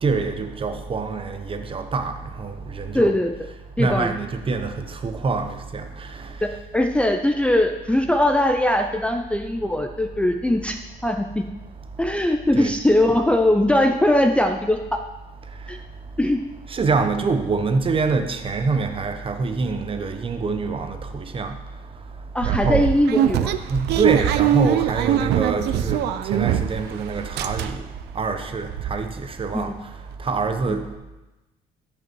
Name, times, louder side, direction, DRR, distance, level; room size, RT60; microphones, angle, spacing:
voice 1, 0.0-3.1 3.8-6.3 12.5-12.7 16.7-21.5 22.4-22.9 23.7-27.8 28.1-29.7 30.2-31.0, right 4 dB, 30° right, 1.0 m, -25 dB
voice 2, 2.9-3.3 3.8-4.1 6.4-6.5 6.7-10.8 11.0-11.4 12.0-15.0 15.7-15.8 16.2-16.4 22.3-23.5 29.5-29.7 30.7-30.8, left 1 dB, 5° left, 0.6 m, -20 dB
sound 1, 22.4-26.9 27.2-28.0 28.4-28.5 28.7-28.9, right 11 dB, 80° right, 0.6 m, -22 dB
14.0 x 5.4 x 4.6 m
cardioid pair, 110°, 17 cm